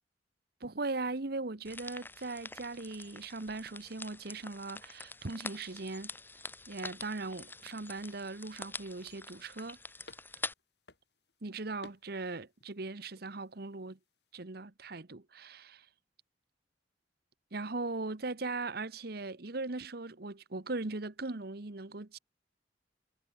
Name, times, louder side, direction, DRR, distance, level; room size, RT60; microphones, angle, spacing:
voice 1, 0.6-6.1 6.7-9.8 11.4-14.0 14.3-15.9 17.5-22.2, right 3 dB, 60° right, 1.2 m, -39 dB
sound 1, 1.6-10.5, left 3 dB, 10° left, 2.0 m, -46 dB
sound 2, 6.7-14.4, left 2 dB, 65° left, 7.7 m, -62 dB
head